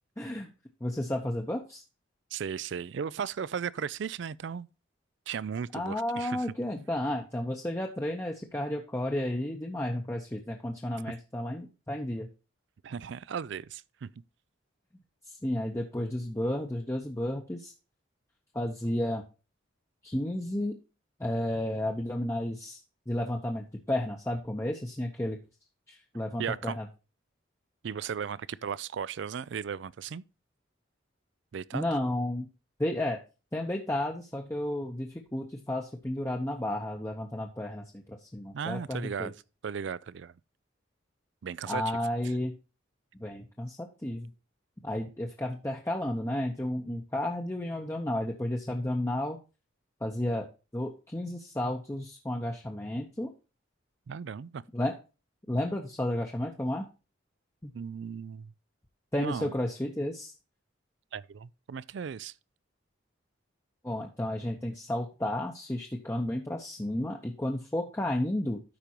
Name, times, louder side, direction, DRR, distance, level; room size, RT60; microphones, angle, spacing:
voice 1, 0.2-0.5 0.8-1.8 5.7-12.3 15.3-17.7 18.5-19.2 20.0-20.8 21.2-22.8 23.1-25.4 25.9-26.9 31.7-32.5 32.8-33.2 33.5-39.3 41.7-42.5 43.2-44.3 44.8-49.4 50.0-50.5 50.7-53.3 54.7-54.9 55.5-56.9 57.6-57.7 59.1-60.3 63.8-68.6, left 1 dB, 15° left, 0.8 m, -32 dB
voice 2, 2.3-4.7 5.3-6.5 11.1-11.2 12.8-14.1 26.4-26.8 27.8-30.2 31.5-31.9 38.5-39.3 39.6-40.3 41.4-41.8 54.1-54.6 57.7-58.5 59.2-59.5 61.1-62.3, right 7 dB, 60° right, 0.4 m, -36 dB
13.0 x 5.2 x 2.9 m
head